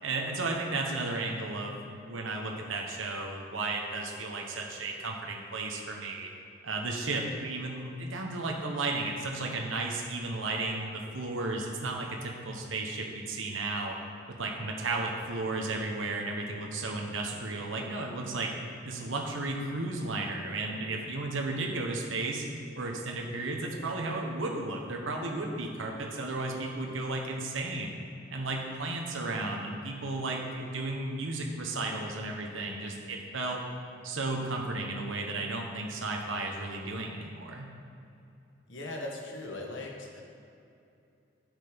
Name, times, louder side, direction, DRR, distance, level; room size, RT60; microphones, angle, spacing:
voice 1, 0.0-6.3 6.6-14.0 14.3-18.5 18.8-22.5 22.8-28.0 28.3-33.6 34.0-37.7, right 2 dB, 80° right, 1 dB, 1.1 m, -34 dB
voice 2, 38.7-40.2, left 2 dB, 70° left, 0 dB, 1.5 m, -39 dB
10.0 x 6.6 x 5.2 m, 2.6 s
head